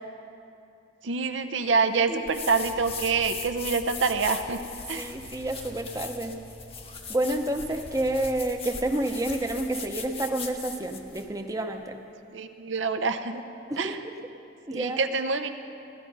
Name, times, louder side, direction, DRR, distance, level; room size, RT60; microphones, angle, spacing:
voice 1, 1.0-4.6 4.9-5.1 12.3-13.4 13.8-14.0 14.7-15.5, right 4 dB, 85° right, 8 dB, 0.7 m, -26 dB
sound 1, 2.3-11.3, left 5 dB, 30° left, 0.9 m, -40 dB
Peaceful Air Plane, 2.6-8.2, left 1 dB, 60° left, 1.2 m, -49 dB
voice 2, 4.9-6.4 7.1-12.0 13.7-14.1 14.7-15.0, right 1 dB, 20° right, 4 dB, 0.7 m, -29 dB
15.0 x 12.5 x 5.4 m, 2.7 s
head